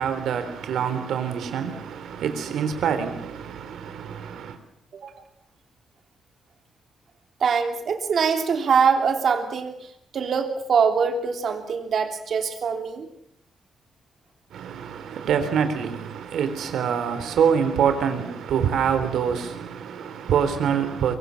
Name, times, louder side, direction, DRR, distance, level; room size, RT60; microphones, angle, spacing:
voice 1, 0.0-4.6 14.5-21.2, right 7 dB, 85° right, 3.7 m, -25 dB
voice 2, 7.4-13.1, right 6 dB, 50° right, 3.1 m, -23 dB
23.5 x 23.0 x 7.1 m
wide cardioid pair, 165°, 0 cm